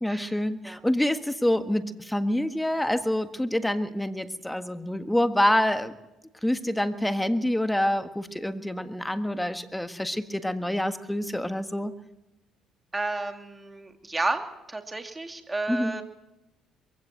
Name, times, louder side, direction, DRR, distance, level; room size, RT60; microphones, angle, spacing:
voice 1, 0.0-5.9 6.4-11.9 15.7-16.0, left 1 dB, 5° left, 10 dB, 1.5 m, -26 dB
voice 2, 12.9-14.4 14.7-16.0, right 2 dB, 20° right, 6 dB, 2.6 m, -31 dB
22.0 x 16.0 x 7.6 m, 0.95 s
supercardioid pair, 80°, 0 cm